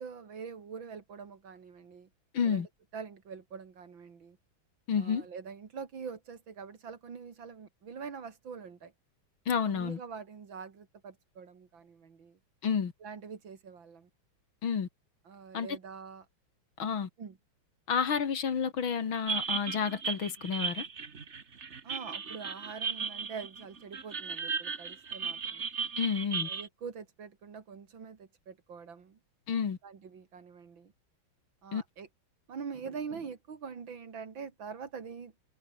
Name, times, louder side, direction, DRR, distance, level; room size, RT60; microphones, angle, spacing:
voice 1, 0.0-2.1 2.4-4.4 4.9-8.9 9.7-12.4 13.0-14.1 15.3-16.3 17.2-17.4 21.8-25.7 26.4-29.2 29.8-30.9 31.6-32.1 32.5-35.5, right 6 dB, 65° right, 3.0 m, -44 dB
voice 2, 2.3-2.7 4.9-5.3 9.5-10.0 12.6-12.9 14.6-14.9 15.5-15.8 16.8-17.1 17.9-20.9 26.0-26.5 29.5-29.8 31.7-31.8, left 7 dB, 70° left, 2.8 m, -30 dB
sound 1, 19.3-26.7, right 5 dB, 35° right, 1.7 m, -36 dB
omnidirectional pair, 2.3 m